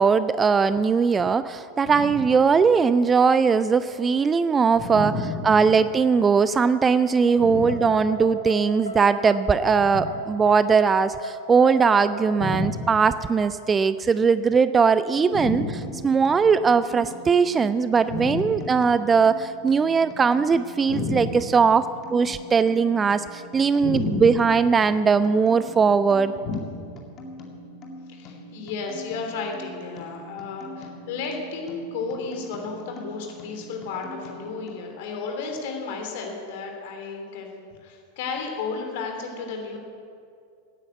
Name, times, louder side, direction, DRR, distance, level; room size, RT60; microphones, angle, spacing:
voice 1, 0.0-5.1 5.4-15.6 16.0-21.9 22.1-26.3, right 5 dB, 20° right, 14 dB, 0.4 m, -20 dB
voice 2, 4.7-5.5 7.4-7.9 12.4-12.9 15.3-15.8 18.1-18.6 20.9-21.3 23.8-24.3 26.4-26.9 28.1-39.8, left 3 dB, 50° left, 2 dB, 3.1 m, -32 dB
sound 1, 5.3-12.5, equal, 75° left, 2.5 m, -36 dB
sound 2, 15.2-34.7, equal, 30° left, 2.3 m, -43 dB
16.5 x 9.7 x 8.1 m, 2.3 s
figure-of-eight pair, 90°, 0 cm